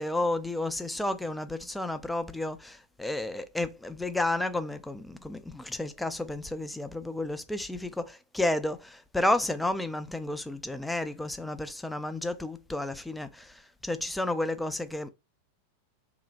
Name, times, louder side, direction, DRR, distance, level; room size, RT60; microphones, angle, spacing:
voice 1, 0.0-15.1, left 2 dB, 5° left, 0.3 m, -31 dB
2.9 x 2.0 x 2.4 m
figure-of-eight pair, 90°, 0 cm